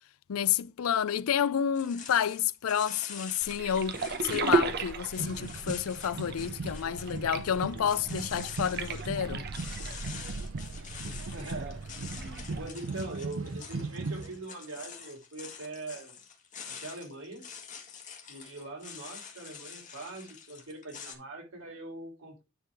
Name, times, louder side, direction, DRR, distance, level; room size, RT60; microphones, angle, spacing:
voice 1, 0.3-9.5, left 8 dB, 85° left, 0.4 m, -30 dB
sound 1, 1.7-21.1, left 7 dB, 35° left, 1.7 m, -46 dB
sound 2, 3.4-12.7, right 3 dB, 50° right, 1.0 m, -36 dB
sound 3, 5.2-14.4, right 3 dB, 70° right, 0.6 m, -39 dB
voice 2, 11.0-11.8 12.1-16.2 16.7-17.5 18.3-22.4, right 2 dB, 85° right, 3.5 m, -42 dB
9.8 x 3.8 x 4.6 m
head